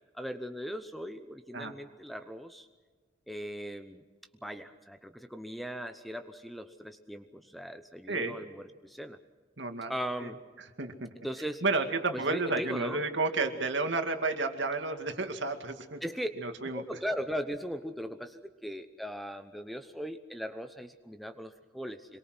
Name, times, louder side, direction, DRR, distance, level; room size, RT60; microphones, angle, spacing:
voice 1, 0.1-2.7 3.3-4.0 4.4-9.2 9.9-10.4 11.2-11.6 12.1-13.0 16.0-16.3 16.7-22.2, equal, ahead, 8 dB, 0.8 m, -39 dB
voice 2, 8.1-8.4 9.6-9.9 10.2-10.3 10.8-11.1 11.6-16.0 16.4-16.8, right 3 dB, 70° right, 6 dB, 2.3 m, -31 dB
26.5 x 22.5 x 6.1 m, 1.4 s
head